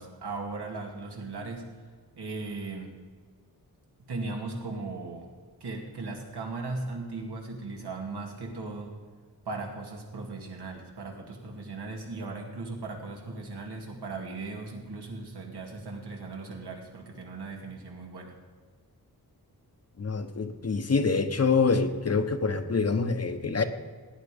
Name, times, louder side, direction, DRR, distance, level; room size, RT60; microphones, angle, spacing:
voice 1, 0.0-1.7 2.2-2.9 4.1-5.3 5.6-8.9 9.4-18.4, right 3 dB, 85° right, 1 dB, 2.6 m, -37 dB
voice 2, 20.0-23.6, left 4 dB, 40° left, 8 dB, 0.9 m, -26 dB
17.0 x 9.7 x 5.2 m, 1.5 s
wide cardioid pair, 135°, 39 cm